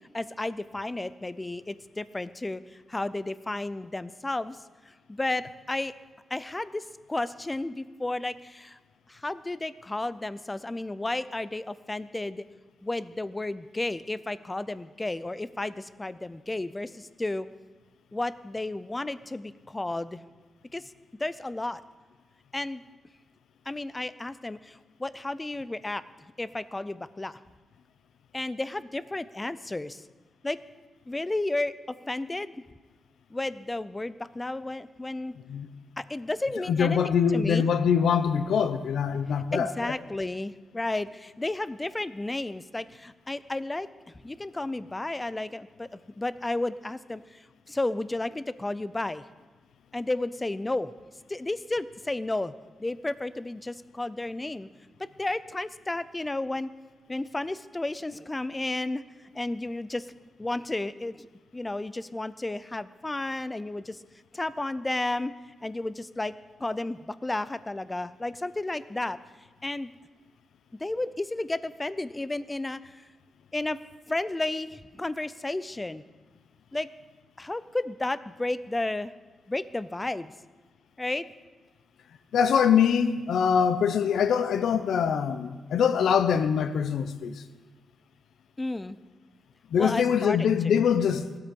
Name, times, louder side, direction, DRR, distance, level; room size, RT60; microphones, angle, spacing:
voice 1, 0.1-2.6 2.9-4.6 5.1-5.9 6.3-8.8 9.1-12.5 12.8-17.5 18.1-20.2 20.7-20.8 21.2-21.8 22.5-22.8 23.7-26.0 26.4-27.4 28.3-30.0 30.4-30.6 31.1-32.6 33.3-35.3 36.0-37.7 39.5-43.9 44.2-47.4 47.7-49.2 49.9-50.9 51.3-52.5 52.8-54.7 55.2-56.7 57.1-59.0 59.3-60.1 60.4-61.3 61.5-64.0 64.3-65.3 65.6-66.3 66.6-69.2 69.6-69.9 70.8-73.0 73.5-73.8 74.1-76.0 76.7-76.9 77.4-79.1 79.5-80.3 81.0-81.2 88.6-89.0 89.8-90.8, left 2 dB, 15° left, 0.4 m, -32 dB
voice 2, 36.7-39.7 82.3-87.3 89.7-91.2, left 7 dB, 85° left, 0.8 m, -23 dB
16.0 x 13.0 x 5.3 m
wide cardioid pair, 145°, 0 cm